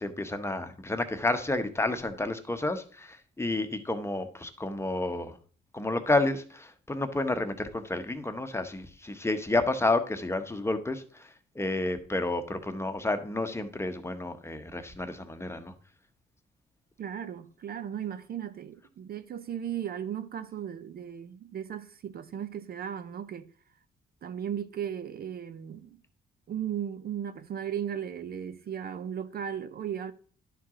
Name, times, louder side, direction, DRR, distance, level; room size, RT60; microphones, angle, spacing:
voice 1, 0.0-5.4 5.7-15.7, left 2 dB, 15° left, 0.9 m, -30 dB
voice 2, 17.0-23.5 24.2-26.0 26.5-30.1, right 9 dB, 50° right, 0.6 m, -36 dB
11.0 x 4.6 x 3.7 m
cardioid pair, 90°, 20 cm